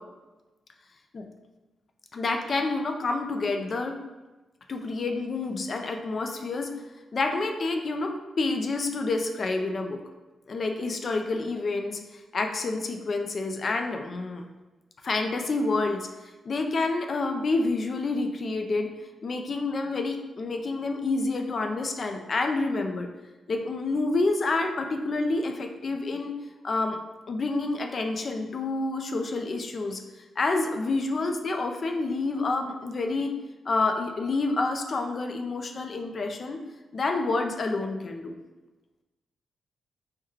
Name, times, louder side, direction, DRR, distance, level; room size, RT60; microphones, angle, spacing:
voice 1, 2.1-4.0 4.7-6.7 7.1-10.0 10.5-14.4 15.0-16.1 16.5-18.9 19.2-23.1 23.5-26.3 26.6-27.0 27.3-30.0 30.4-33.3 33.7-36.6 36.9-38.3, left 3 dB, 50° left, 4 dB, 0.3 m, -28 dB
3.1 x 2.1 x 3.5 m, 1.1 s
cardioid pair, 90°, 0 cm